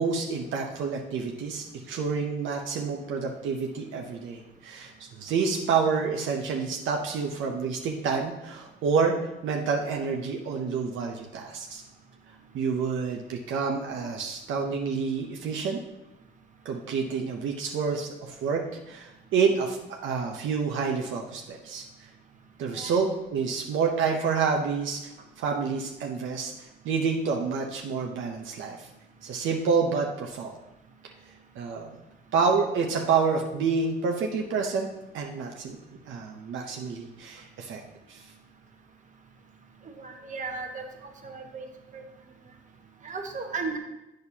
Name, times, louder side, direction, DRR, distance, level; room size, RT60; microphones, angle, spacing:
voice 1, 0.0-11.8 12.5-15.8 16.6-18.6 18.9-21.8 22.6-25.1 25.4-28.9 29.2-30.5 31.6-31.9 32.3-34.9 35.1-35.8 36.1-37.8 38.1-38.3, right 5 dB, 75° right, 0 dB, 0.8 m, -28 dB
voice 2, 40.0-40.8 41.2-41.7 41.9-42.0 43.0-43.8, right 4 dB, 40° right, 2 dB, 1.3 m, -35 dB
8.7 x 6.4 x 2.8 m, 0.95 s
cardioid pair, 90°, 20 cm